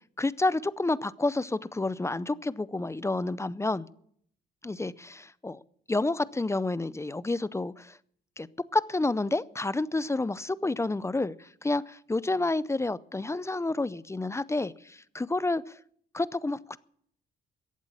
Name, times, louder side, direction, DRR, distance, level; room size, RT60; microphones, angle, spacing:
voice 1, 0.2-3.9 4.6-5.6 5.9-8.0 8.4-8.5 8.7-15.8 16.1-16.8, left 2 dB, 15° left, 0.5 m, -29 dB
14.5 x 8.2 x 8.7 m
cardioid pair, 90°, 20 cm